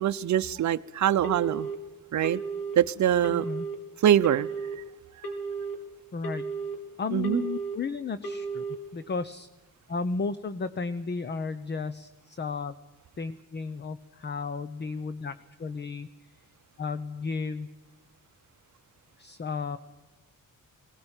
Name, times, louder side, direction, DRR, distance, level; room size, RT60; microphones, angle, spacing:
voice 1, 0.0-1.7 2.1-2.4 2.8-3.4 4.0-4.5 7.1-7.4, right 10 dB, 60° right, 0.7 m, -23 dB
Telephone, 1.2-1.7 2.2-2.7 3.2-3.7 4.2-4.7 5.2-5.7 6.2-6.7 7.2-7.7 8.2-8.7, right 4 dB, 70° left, 4.4 m, -34 dB
voice 2, 3.3-3.7 6.1-6.5 7.0-8.6 8.9-9.5 9.9-12.8 13.2-16.1 16.8-17.7 19.2-19.8, left 4 dB, 30° left, 0.9 m, -33 dB
19.5 x 19.0 x 8.9 m
wide cardioid pair, 140°, 33 cm